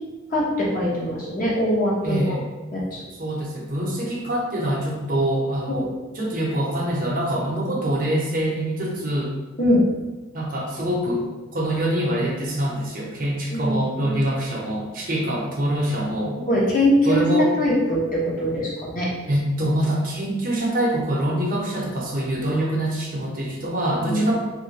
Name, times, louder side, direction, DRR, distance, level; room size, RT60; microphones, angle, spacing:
voice 1, 0.3-2.4 2.7-3.0 5.7-5.9 9.6-9.9 13.5-14.2 16.5-17.2 17.6-19.1 24.0-24.3, equal, 40° left, -4 dB, 0.8 m, -22 dB
voice 2, 2.0-2.4 3.2-5.9 6.2-9.3 10.3-11.3 11.5-16.4 17.1-17.5 19.3-24.3, right 1 dB, 45° right, -3 dB, 0.6 m, -25 dB
3.1 x 2.4 x 3.2 m, 1.2 s
head